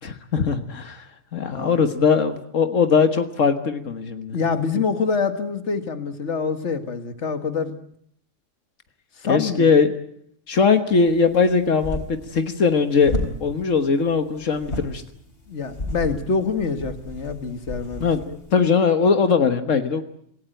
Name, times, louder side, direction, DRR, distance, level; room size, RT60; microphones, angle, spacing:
voice 1, 0.0-1.0 1.3-4.4 9.3-9.9 10.5-12.0 12.3-15.0 18.0-18.2 18.5-20.0, left 5 dB, 85° left, 8 dB, 1.8 m, -20 dB
voice 2, 1.5-1.8 4.3-7.7 9.2-9.7 15.5-18.4, left 5 dB, 65° left, 9 dB, 2.0 m, -26 dB
sound 1, 11.1-18.7, left 1 dB, 50° left, 5.0 m, -34 dB
27.5 x 17.5 x 9.1 m, 0.69 s
omnidirectional pair, 1.3 m